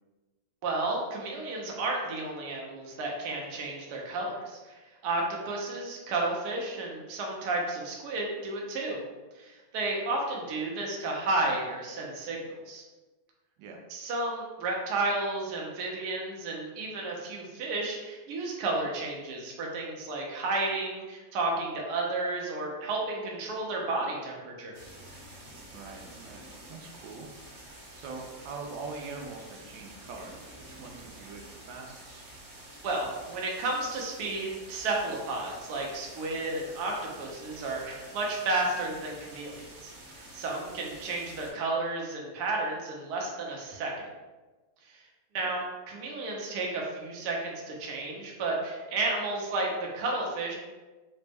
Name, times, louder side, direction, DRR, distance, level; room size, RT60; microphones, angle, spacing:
voice 1, 0.6-9.0 9.3-12.4 12.7-12.8 13.9-24.8 32.8-39.9 40.1-44.1 44.9-45.0 45.3-50.5, right 2 dB, 65° right, -1 dB, 1.1 m, -32 dB
sound 1, 24.7-41.5, right 1 dB, 45° right, 1.0 m, -49 dB
voice 2, 25.7-27.3 27.6-32.2 45.4-45.6, right 4 dB, 90° right, 1 dB, 1.3 m, -43 dB
4.0 x 2.1 x 3.3 m, 1.2 s
omnidirectional pair, 2.0 m